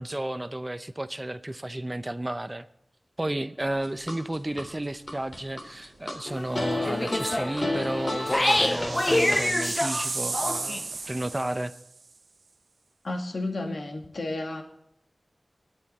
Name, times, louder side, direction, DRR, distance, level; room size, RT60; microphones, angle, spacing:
voice 1, 0.0-2.7 3.2-11.7, right 1 dB, 25° right, 12 dB, 0.7 m, -32 dB
sound 1, 3.6-4.6 5.1-6.2 6.6-9.4, left 2 dB, 50° left, 3.4 m, -32 dB
sound 2, 5.1-5.4 5.8-5.9 7.3-12.0, right 4 dB, 90° right, 0.7 m, -35 dB
sound 3, 6.3-10.8, left 1 dB, 25° left, 0.6 m, -27 dB
voice 2, 13.0-14.6, left 2 dB, 80° left, 3 dB, 2.5 m, -32 dB
21.5 x 10.0 x 4.2 m, 0.76 s
wide cardioid pair, 65°, 0 cm